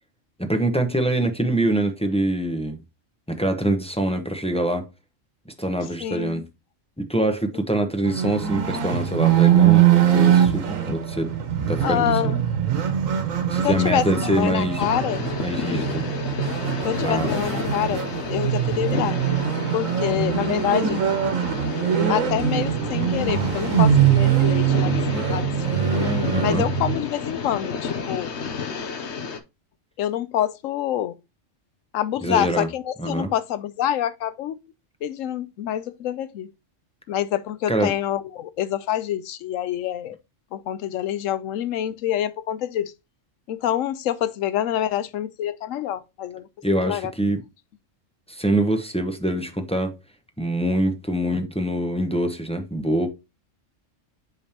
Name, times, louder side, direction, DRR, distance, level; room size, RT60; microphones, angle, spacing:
voice 1, 0.4-2.8 3.3-4.9 5.6-6.5 7.0-11.3 11.7-12.3 13.5-14.8 15.4-16.0 17.0-17.3 20.1-20.6 26.3-26.6 32.2-32.7 33.0-33.3 37.7-37.9 46.6-47.4 48.3-49.9 50.4-53.1, right 1 dB, 5° left, 0.8 m, -24 dB
voice 2, 6.0-6.4 11.8-12.4 13.6-15.2 15.6-15.8 16.8-18.0 18.3-19.2 19.7-21.0 22.1-24.9 25.3-25.9 26.4-28.3 30.0-31.2 31.9-34.6 35.0-36.5 37.1-40.2 40.5-42.9 43.5-46.5 46.8-47.1, left 11 dB, 85° left, 1.0 m, -26 dB
sound 1, 8.0-27.0, right 9 dB, 90° right, 1.4 m, -22 dB
sound 2, 14.8-29.4, left 5 dB, 60° left, 1.1 m, -31 dB
7.1 x 5.2 x 2.8 m
omnidirectional pair, 1.3 m